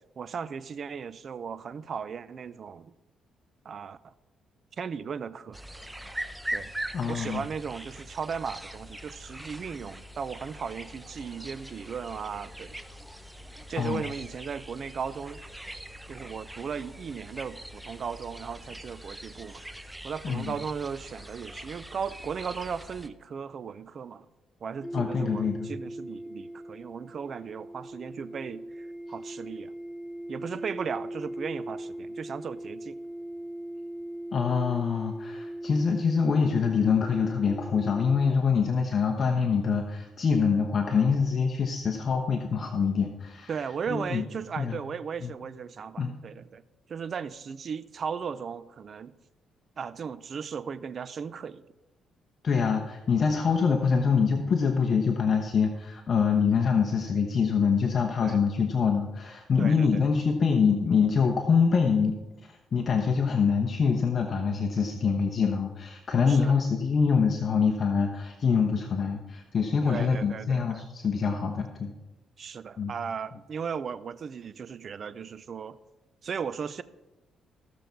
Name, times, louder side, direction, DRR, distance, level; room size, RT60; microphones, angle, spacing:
voice 1, 0.2-2.9 3.6-4.1 4.8-5.6 6.5-6.7 7.1-12.7 13.7-15.4 16.1-19.6 20.0-24.3 24.6-29.7 30.3-33.0 43.5-46.6 46.9-49.1 49.8-51.6 58.2-58.4 59.6-60.0 66.3-66.6 69.9-70.8 72.4-75.8 76.2-76.8, right 6 dB, 50° right, 16 dB, 0.6 m, -36 dB
sound 1, 5.5-23.1, right 1 dB, 10° right, 0.7 m, -42 dB
voice 2, 6.9-7.4 13.8-14.0 20.2-20.5 24.9-25.7 34.3-43.5 43.9-44.2 44.6-44.8 45.2-45.3 46.0-46.1 52.4-62.2 62.5-71.9 72.8-72.9, left 5 dB, 45° left, 2 dB, 1.0 m, -25 dB
sound 2, 24.8-38.3, right 1 dB, 5° left, 1.4 m, -39 dB
15.5 x 6.9 x 4.6 m, 1.0 s
cardioid pair, 90°, 0 cm